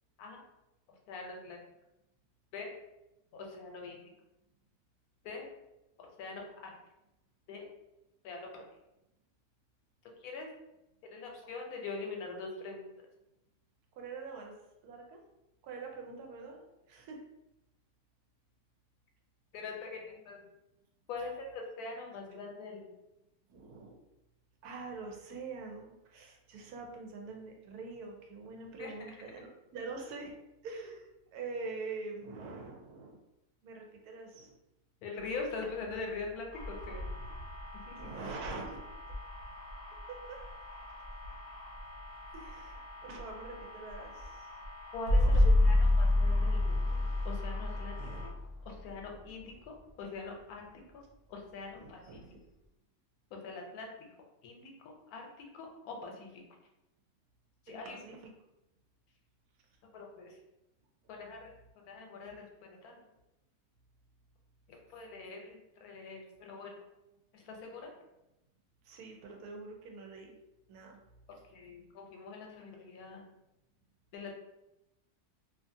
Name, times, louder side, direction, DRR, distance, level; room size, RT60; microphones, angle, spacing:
voice 1, 1.1-1.6 2.5-2.7 3.3-4.0 5.2-5.4 6.0-6.7 7.5-7.7 8.2-8.7 10.2-10.5 11.0-12.8 19.5-20.4 21.1-22.8 28.8-28.9 35.0-37.0 37.9-38.1 44.9-46.8 47.2-48.0 48.2-48.3 48.6-51.0 51.3-52.3 53.3-54.1 54.4-56.4 57.7-58.0 59.9-60.4 61.1-63.0 64.7-66.7 67.3-67.9 71.3-73.3 74.1-74.3, left 3 dB, 80° left, 1 dB, 1.1 m, -43 dB
voice 2, 14.0-14.5 14.8-15.2 15.6-17.2 23.5-24.0 24.6-30.3 30.6-33.2 33.6-34.5 38.0-38.8 40.1-40.4 42.3-44.5 45.2-45.5 51.7-52.4 57.7-58.2 68.8-70.4 70.7-71.0, right 4 dB, 80° right, 1 dB, 1.1 m, -44 dB
sound 1, 35.8-36.8 38.5-38.6 45.1-49.7, left 2 dB, 60° left, 0.5 m, -27 dB
sound 2, 36.5-48.3, left 1 dB, 60° right, 0.9 m, -46 dB
2.7 x 2.4 x 2.6 m, 0.92 s
omnidirectional pair, 1.6 m